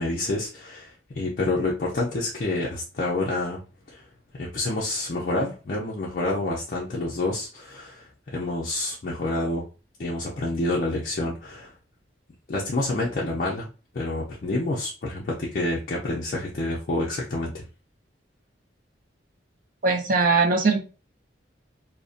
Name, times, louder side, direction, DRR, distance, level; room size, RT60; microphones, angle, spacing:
voice 1, 0.0-3.6 3.9-4.0 4.4-9.6 10.0-11.7 12.5-13.7 13.9-17.6, left 2 dB, 45° left, -4 dB, 0.4 m, -28 dB
voice 2, 19.8-20.8, right 4 dB, 45° right, 4 dB, 0.4 m, -20 dB
2.5 x 2.1 x 2.4 m, 0.34 s
head